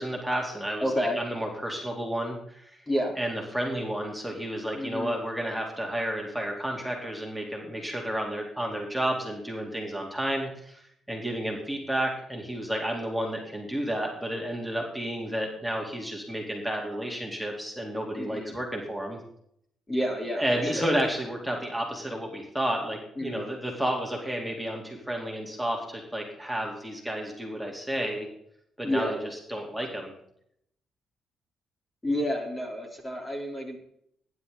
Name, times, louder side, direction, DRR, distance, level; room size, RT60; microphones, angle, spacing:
voice 1, 0.0-0.9 1.2-2.8 3.2-10.8 11.1-19.2 20.4-28.3 28.8-30.1, right 1 dB, ahead, -1 dB, 4.1 m, -31 dB
voice 2, 0.8-1.2 2.9-3.2 4.7-5.1 18.1-18.5 19.9-20.9 23.2-23.5 28.8-29.2 32.0-33.8, equal, 20° left, 1 dB, 4.4 m, -30 dB
18.0 x 11.5 x 4.2 m, 0.70 s
cardioid pair, 90°, 0 cm